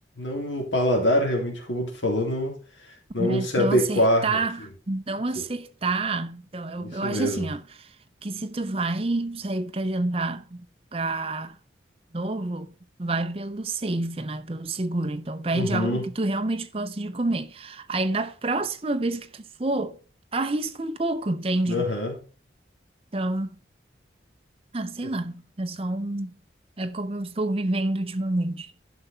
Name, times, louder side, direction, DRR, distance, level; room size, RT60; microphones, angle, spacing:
voice 1, 0.2-2.6 3.1-4.4 5.3-5.4 6.8-7.5 15.5-16.1 21.7-22.2, left 1 dB, 90° left, 3.0 m, -24 dB
voice 2, 3.2-7.9 8.2-10.7 10.9-11.6 12.1-12.7 13.0-20.0 20.3-21.9 23.1-23.6 24.7-26.3 26.8-28.7, right 2 dB, 30° right, 0.7 m, -28 dB
11.5 x 5.6 x 4.4 m
head